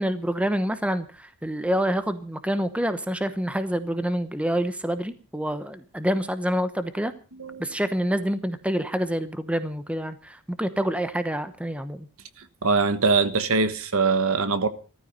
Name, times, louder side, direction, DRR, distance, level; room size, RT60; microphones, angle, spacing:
voice 1, 0.0-7.1 7.6-12.1, equal, 5° right, 0.9 m, -27 dB
voice 2, 12.6-14.7, right 4 dB, 65° right, 1.4 m, -22 dB
15.5 x 14.0 x 5.3 m
head